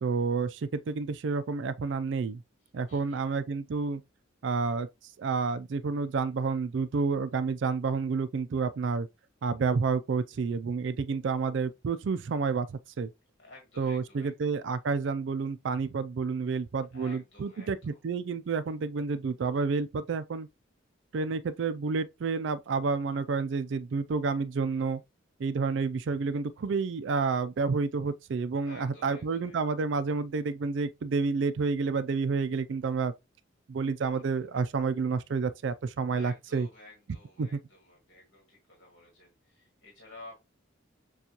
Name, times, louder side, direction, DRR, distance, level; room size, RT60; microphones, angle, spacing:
voice 1, 0.0-2.4 2.7-4.0 4.4-4.9 5.2-9.1 9.4-13.1 13.8-20.5 21.1-25.0 25.4-33.1 33.7-36.7 37.4-37.6, right 4 dB, 60° right, 0.4 m, -29 dB
voice 2, 2.9-3.2 13.4-14.5 16.9-18.0 28.6-29.6 34.1-34.4 36.1-40.3, left 1 dB, 60° left, 1.6 m, -52 dB
6.8 x 2.4 x 2.9 m
head